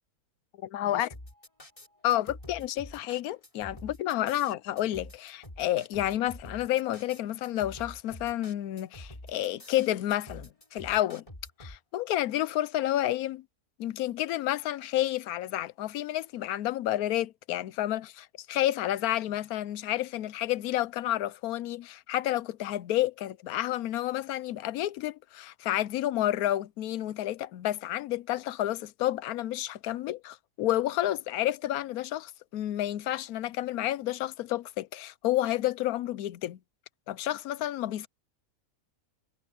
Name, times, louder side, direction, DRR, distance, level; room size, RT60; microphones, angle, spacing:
voice 1, 0.6-1.1 2.0-11.2 11.6-13.4 13.8-36.6 37.1-38.1, left 13 dB, 90° left, 1.1 m, -30 dB
sound 1, 1.1-11.8, left 1 dB, 25° left, 3.0 m, -47 dB
omnidirectional pair, 1.5 m